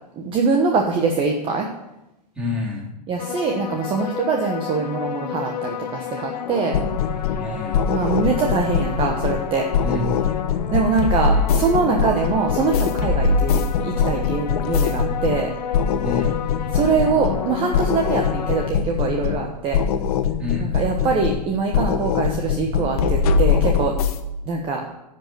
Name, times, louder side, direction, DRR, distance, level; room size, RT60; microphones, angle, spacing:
voice 1, 0.2-1.7 3.1-6.8 7.9-9.7 10.7-15.5 16.7-19.8 20.6-23.9 24.5-24.8, right 4 dB, 25° right, 2 dB, 1.1 m, -23 dB
voice 2, 2.3-3.0 7.4-7.9 9.8-10.3 16.0-16.4 20.4-20.8, left 2 dB, 5° right, -4 dB, 3.1 m, -28 dB
sound 1, 3.2-18.7, left 8 dB, 80° left, 1.0 m, -31 dB
sound 2, 6.7-7.5 7.7-9.5 9.7-15.5 15.7-17.5 17.7-19.5 19.7-21.5 21.7-24.2, left 6 dB, 60° left, 1.0 m, -22 dB
10.5 x 5.2 x 7.7 m, 0.89 s
hypercardioid pair, 130°, 21 cm